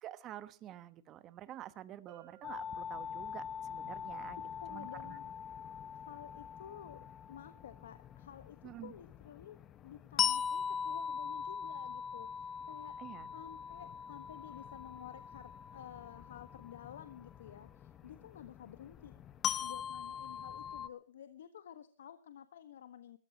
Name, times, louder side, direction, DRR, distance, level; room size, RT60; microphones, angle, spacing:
voice 1, 0.0-4.4 4.7-5.2 8.6-8.9 13.0-13.3, right 12 dB, 25° right, 14 dB, 1.2 m, -48 dB
Bell, 2.1-3.7, right 12 dB, 45° right, 6.7 m, -60 dB
sound 1, 2.4-20.9, left 8 dB, 20° left, 0.7 m, -41 dB
voice 2, 4.6-5.3 6.0-13.0 13.3-19.1 19.6-23.2, left 9 dB, 80° left, 11 dB, 1.3 m, -52 dB
22.5 x 15.0 x 2.9 m, 0.36 s
supercardioid pair, 155°, 0 cm